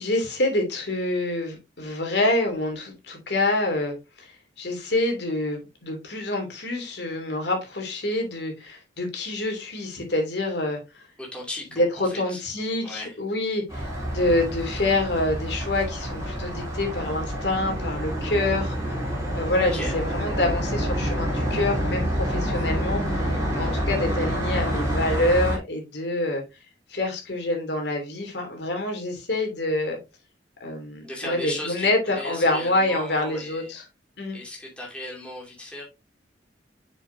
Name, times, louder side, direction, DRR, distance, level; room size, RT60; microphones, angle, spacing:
voice 1, 0.0-4.3 4.6-10.8 11.8-18.9 19.3-26.4 26.9-30.0 30.6-33.8 34.2-34.4, left 2 dB, 65° left, 2.8 m, -26 dB
voice 2, 11.2-12.4 12.8-13.2 19.7-19.9 31.0-33.7 34.3-35.8, left 1 dB, 5° left, 2.6 m, -36 dB
sound 1, 13.7-25.6, equal, 20° right, 3.3 m, -27 dB
7.1 x 6.7 x 2.7 m
head